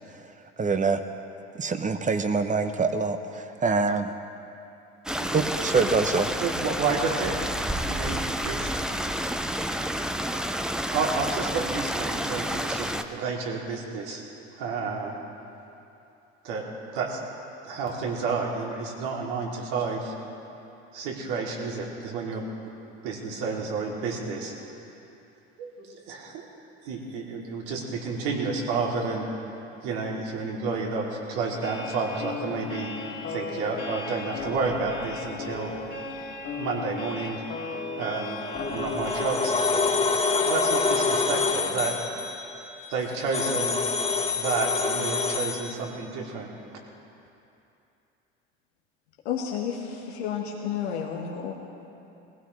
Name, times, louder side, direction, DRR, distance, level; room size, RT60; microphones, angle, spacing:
voice 1, 0.6-1.0 1.6-3.2 3.6-4.1 5.3-6.3, right 4 dB, 25° right, 8 dB, 1.1 m, -24 dB
Stream, 5.1-13.0, equal, ahead, 0.7 m, -29 dB
voice 2, 6.4-7.3 7.9-8.7 9.2-9.3 10.9-14.2 14.6-15.2 16.4-16.6 16.9-17.2 17.6-20.1 20.9-22.4 23.0-24.5 25.6-26.4 26.8-29.3 29.8-32.9 33.3-35.7 36.6-37.4 38.0-38.4 38.7-39.9 40.3-42.0 42.9-43.8 44.4-46.5, right 4 dB, 70° right, -2 dB, 2.8 m, -30 dB
sound 1, 31.5-39.3, left 4 dB, 40° left, 2.7 m, -36 dB
sound 2, 38.3-45.7, left 4 dB, 20° left, 1.8 m, -26 dB
voice 3, 49.2-51.5, left 7 dB, 80° left, -1 dB, 1.5 m, -31 dB
20.5 x 15.5 x 3.3 m, 2.8 s
hypercardioid pair, 75°, 32 cm